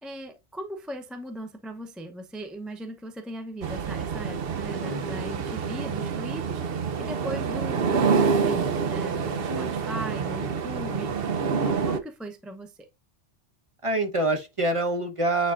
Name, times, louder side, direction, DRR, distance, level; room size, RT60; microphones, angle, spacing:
voice 1, 0.0-11.1 11.6-12.8, right 1 dB, ahead, 0.6 m, -38 dB
sound 1, 3.6-12.0, right 5 dB, 60° right, 0.9 m, -27 dB
voice 2, 4.8-5.3 9.5-9.7 13.8-15.5, right 2 dB, 30° right, 1.1 m, -26 dB
9.1 x 4.2 x 2.5 m
omnidirectional pair, 1.2 m